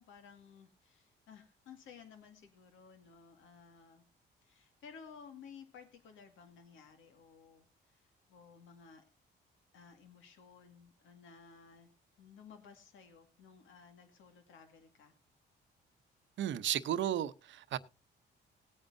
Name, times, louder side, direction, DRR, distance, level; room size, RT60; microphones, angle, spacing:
voice 1, 0.0-4.0 4.4-9.0 9.7-11.9 12.2-15.1, left 6 dB, 80° left, 2.0 m, -56 dB
voice 2, 16.4-17.8, right 11 dB, 70° right, 0.8 m, -34 dB
18.5 x 8.9 x 2.7 m
cardioid pair, 90°, 20 cm